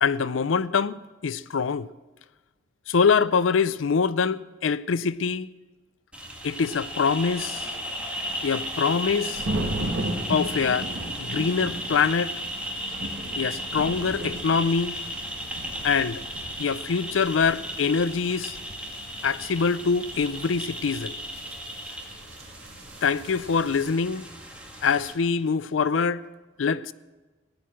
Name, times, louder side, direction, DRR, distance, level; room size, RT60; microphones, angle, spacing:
voice 1, 0.0-1.9 2.9-5.5 6.4-7.7 8.4-9.5 10.3-10.9 11.2-12.4 13.4-15.0 15.8-16.2 16.6-18.6 19.2-21.2 23.0-24.3 24.8-26.3 26.6-26.9, left 5 dB, 85° left, 0.5 m, -24 dB
sound 1, 6.1-25.1, equal, 5° right, 2.2 m, -35 dB
sound 2, 6.8-23.9, right 1 dB, 85° right, 2.1 m, -37 dB
15.5 x 10.5 x 7.6 m
head